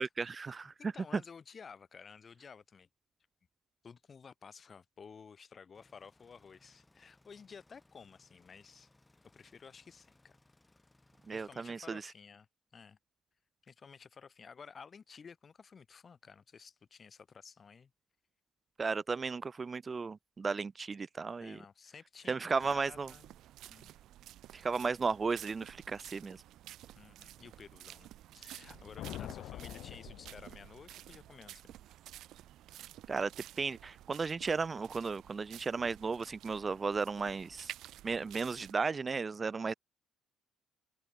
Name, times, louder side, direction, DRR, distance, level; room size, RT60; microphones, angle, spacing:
voice 1, 0.0-0.7 11.3-12.0 18.8-21.6 22.3-23.1 24.5-26.4 33.1-33.3 33.6-37.7 38.0-39.7, right 4 dB, 35° right, 0.5 m, -35 dB
voice 2, 0.6-2.9 3.8-8.9 9.2-10.4 11.3-12.5 12.7-13.0 13.6-17.9 21.4-23.4 23.7-23.9 27.0-31.7, left 6 dB, 45° left, 5.3 m, -53 dB
sound 1, 5.7-11.5, left 2 dB, 15° left, 6.1 m, -67 dB
sound 2, 22.6-38.7, right 13 dB, 70° right, 3.9 m, -52 dB
sound 3, 28.5-31.0, left 13 dB, 70° left, 1.3 m, -46 dB
hypercardioid pair, 55°, 0 cm